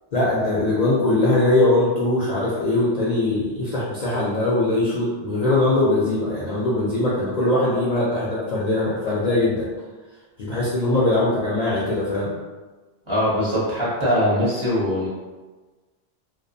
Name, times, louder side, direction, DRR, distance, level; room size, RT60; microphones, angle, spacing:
voice 1, 0.1-9.7 10.4-12.3, left 2 dB, 55° left, -8 dB, 0.5 m, -21 dB
voice 2, 13.1-15.1, equal, 35° right, -9 dB, 0.6 m, -22 dB
2.5 x 2.0 x 2.6 m, 1.3 s
omnidirectional pair, 1.0 m